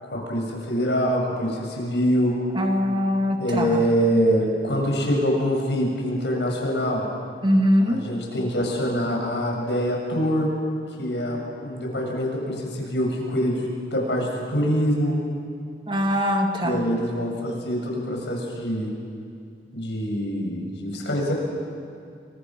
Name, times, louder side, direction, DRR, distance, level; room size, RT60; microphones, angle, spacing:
voice 1, 0.0-2.4 3.4-7.1 7.9-10.5 11.0-15.2 16.6-18.9 19.7-21.3, equal, 80° left, 0 dB, 7.2 m, -24 dB
voice 2, 2.5-3.8 7.4-8.0 15.9-16.9, equal, 30° right, 3 dB, 2.2 m, -22 dB
29.5 x 24.5 x 6.3 m, 2.4 s
head